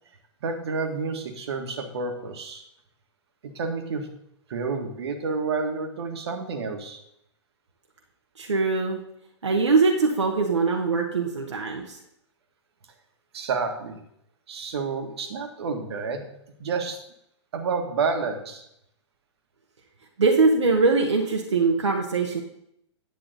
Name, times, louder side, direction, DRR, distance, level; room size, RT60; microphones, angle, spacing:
voice 1, 0.4-2.6 3.4-4.1 4.5-7.0 13.3-14.0 14.5-16.3 16.6-17.0 17.5-18.7, right 4 dB, 60° right, 5 dB, 1.8 m, -29 dB
voice 2, 8.4-9.0 9.4-12.0 20.2-22.4, right 4 dB, 75° right, 0 dB, 1.4 m, -22 dB
10.5 x 8.3 x 4.1 m, 0.76 s
figure-of-eight pair, 110°, 15 cm